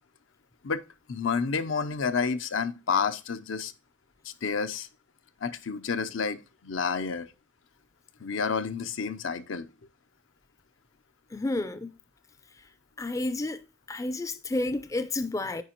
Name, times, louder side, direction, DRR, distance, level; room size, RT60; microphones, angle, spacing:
voice 1, 1.1-3.7 4.2-4.9 5.4-7.3 8.2-9.7, left 5 dB, 80° left, 0.7 m, -30 dB
voice 2, 11.3-11.9 13.0-13.6 13.9-15.6, left 2 dB, 15° left, 0.4 m, -30 dB
9.4 x 4.7 x 2.9 m
head